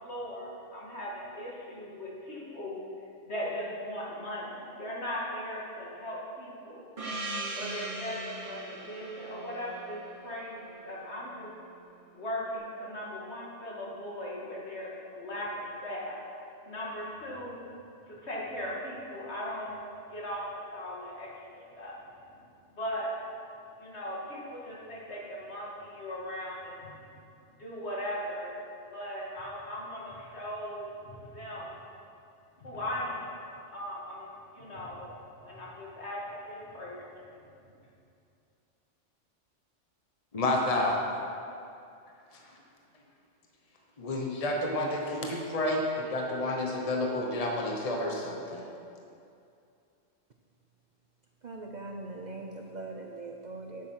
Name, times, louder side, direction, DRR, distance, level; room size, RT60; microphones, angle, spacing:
voice 1, 0.0-2.8 3.3-6.9 7.5-11.5 12.1-16.2 16.7-17.6 18.1-19.7 20.1-21.3 21.5-22.0 22.7-23.2 23.8-27.0 27.6-28.6 28.9-31.8 32.6-33.4 33.7-34.3 34.5-35.1 35.4-36.2 36.4-37.1, equal, 60° left, -5 dB, 2.6 m, -38 dB
Gong, 7.0-11.3, right 2 dB, 30° right, 1.1 m, -40 dB
voice 2, 40.3-41.0 44.0-48.7, left 1 dB, 30° left, 0 dB, 1.1 m, -30 dB
voice 3, 51.4-53.9, right 2 dB, 45° right, 2 dB, 0.6 m, -41 dB
9.7 x 8.8 x 5.8 m, 2.5 s
omnidirectional pair, 1.3 m